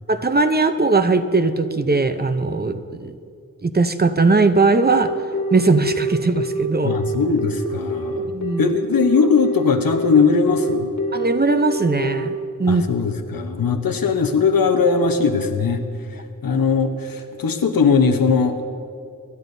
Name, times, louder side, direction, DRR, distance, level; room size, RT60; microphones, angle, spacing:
voice 1, 0.1-3.1 3.6-5.1 5.5-7.0 8.3-8.7 11.1-12.3 12.6-12.8, right 3 dB, 30° right, 9 dB, 0.7 m, -19 dB
Telephone, 4.9-12.3, equal, 55° left, 1.8 m, -26 dB
voice 2, 6.8-8.3 8.6-10.9 12.7-15.8 16.4-18.6, left 5 dB, 85° left, 6 dB, 1.0 m, -19 dB
24.5 x 11.0 x 2.7 m, 2.3 s
wide cardioid pair, 70°, 34 cm